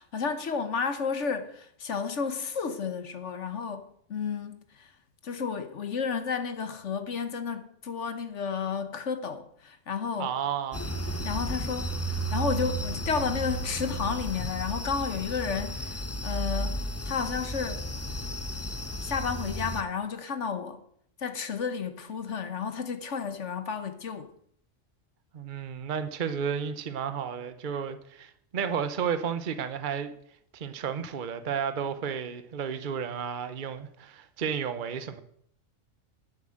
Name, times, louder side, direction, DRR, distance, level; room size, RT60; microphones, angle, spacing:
voice 1, 0.0-4.9 5.2-10.3 11.2-17.9 19.0-20.8 21.2-24.3, left 6 dB, 65° left, 1.3 m, -32 dB
voice 2, 10.2-10.8 25.3-30.1 30.5-35.2, right 7 dB, 45° right, 1.0 m, -32 dB
sound 1, 10.7-19.8, right 1 dB, 15° left, 0.6 m, -33 dB
11.0 x 7.9 x 7.7 m
omnidirectional pair, 1.4 m